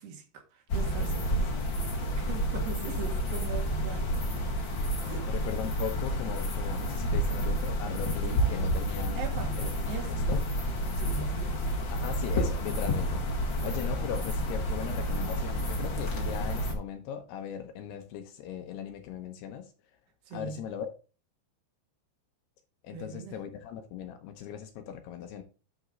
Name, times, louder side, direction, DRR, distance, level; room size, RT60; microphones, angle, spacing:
voice 1, 0.0-4.1 5.0-5.3 8.3-8.7 9.2-10.3 11.0-11.6 20.3-20.6 22.9-23.4, right 6 dB, 70° right, 3.4 m, -41 dB
sound 1, 0.7-16.7, equal, 55° left, 1.3 m, -30 dB
voice 2, 5.3-9.2 9.6-10.4 11.9-13.2 13.6-19.7 20.3-20.9 22.8-25.4, left 9 dB, 75° left, 2.6 m, -38 dB
11.0 x 5.1 x 3.8 m
omnidirectional pair, 5.3 m